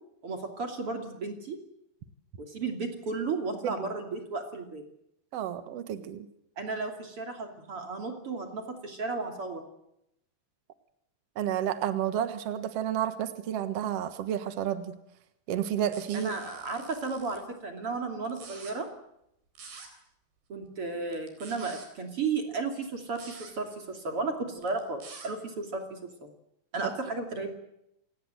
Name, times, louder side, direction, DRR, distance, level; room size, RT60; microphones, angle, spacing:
voice 1, 0.2-1.6 2.4-4.8 6.6-9.6 16.1-18.9 20.5-26.3 26.7-27.5, right 4 dB, 35° right, 4 dB, 3.1 m, -34 dB
voice 2, 5.3-6.2 11.3-15.0 15.5-16.3, right 10 dB, 90° right, 11 dB, 1.3 m, -31 dB
sound 1, 15.9-17.4 18.2-18.7 19.5-19.9 21.1-21.9 23.1-23.5 24.6-25.3, right 5 dB, 65° right, 5.9 m, -47 dB
28.0 x 19.0 x 7.9 m, 0.80 s
omnidirectional pair, 5.1 m